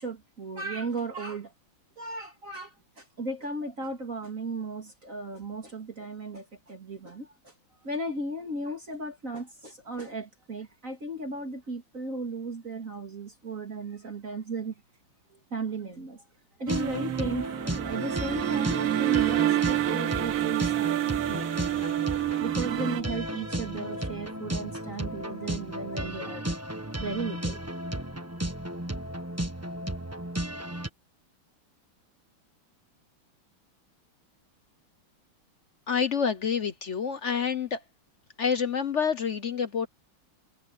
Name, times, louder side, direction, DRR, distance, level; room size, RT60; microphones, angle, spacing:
voice 1, 0.0-1.5 2.0-14.7 15.3-16.2 16.6-21.7 22.4-26.6 27.0-27.6, right 2 dB, 40° right, 3.0 m, -36 dB
sound 1, 16.7-30.9, right 1 dB, 10° right, 1.1 m, -34 dB
sound 2, 16.7-23.0, right 14 dB, 65° right, 0.8 m, -28 dB
voice 2, 35.9-37.8 38.4-39.9, left 6 dB, 50° left, 0.9 m, -28 dB
omnidirectional pair, 2.2 m